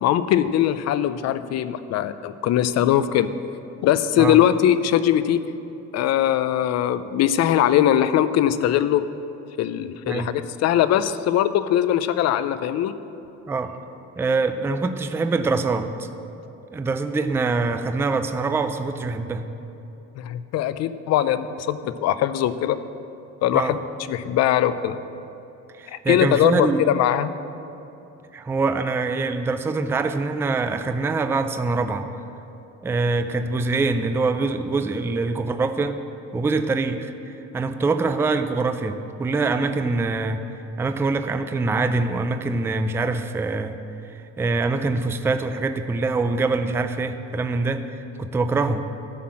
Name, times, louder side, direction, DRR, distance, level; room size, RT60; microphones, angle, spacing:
voice 1, 0.0-3.3 3.8-5.4 5.9-9.0 9.6-12.9 20.2-22.8 23.4-23.8 24.1-25.0 25.9-27.3, left 11 dB, 60° left, 13 dB, 0.5 m, -21 dB
voice 2, 14.2-16.1 16.7-19.4 23.5-23.7 25.8-26.8 28.3-32.1 32.8-36.0 36.3-40.4 40.8-43.8 44.1-48.8, right 3 dB, 10° right, 9 dB, 0.3 m, -24 dB
13.0 x 5.7 x 7.4 m, 2.9 s
cardioid pair, 155°, 29 cm